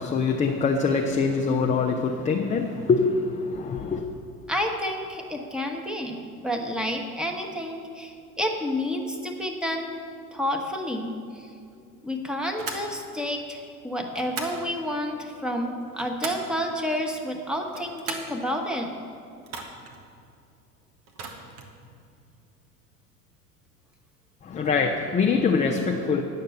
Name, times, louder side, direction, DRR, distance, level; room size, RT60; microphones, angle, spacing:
voice 1, 0.0-4.0 24.4-26.2, left 4 dB, 15° left, 1 dB, 0.6 m, -24 dB
voice 2, 4.5-10.0 10.3-11.5 12.0-19.0, equal, ahead, 2 dB, 1.1 m, -30 dB
sound 1, 12.6-12.9 14.1-14.6 15.7-16.5 17.6-18.4 19.4-20.0 21.1-21.7, right 4 dB, 65° right, 1.5 m, -37 dB
9.7 x 6.6 x 7.8 m, 2.4 s
figure-of-eight pair, 80°, 47 cm